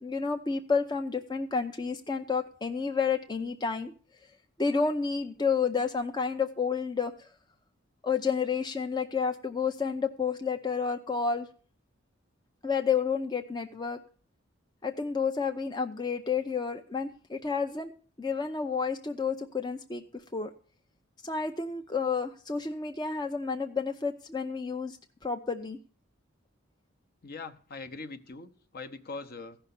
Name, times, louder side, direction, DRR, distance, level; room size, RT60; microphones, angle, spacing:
voice 1, 0.0-3.9 4.6-7.3 8.0-11.5 12.6-14.0 14.8-17.9 18.2-20.0 20.3-20.5 21.2-25.0 25.2-25.8, left 5 dB, 20° left, 5 dB, 0.5 m, -30 dB
voice 2, 27.2-29.6, left 3 dB, 50° left, 11 dB, 0.8 m, -42 dB
15.0 x 5.8 x 6.9 m, 0.43 s
head